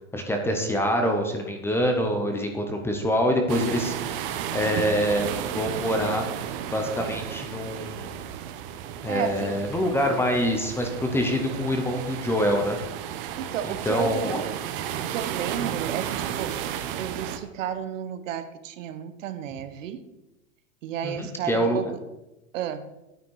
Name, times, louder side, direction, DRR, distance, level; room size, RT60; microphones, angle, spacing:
voice 1, 0.1-4.2 4.5-5.3 5.5-6.3 6.7-8.2 9.0-12.8 13.6-14.4 21.0-21.8, equal, 5° left, 3 dB, 0.7 m, -25 dB
sound 1, 3.5-17.4, right 10 dB, 45° right, 0.9 m, -33 dB
voice 2, 9.1-9.6 10.1-10.2 13.2-14.6 15.0-16.6 17.0-20.0 20.8-22.0 22.5-22.9, right 9 dB, 70° right, 11 dB, 1.0 m, -33 dB
9.5 x 9.2 x 4.7 m, 0.96 s
supercardioid pair, 155°, 40 cm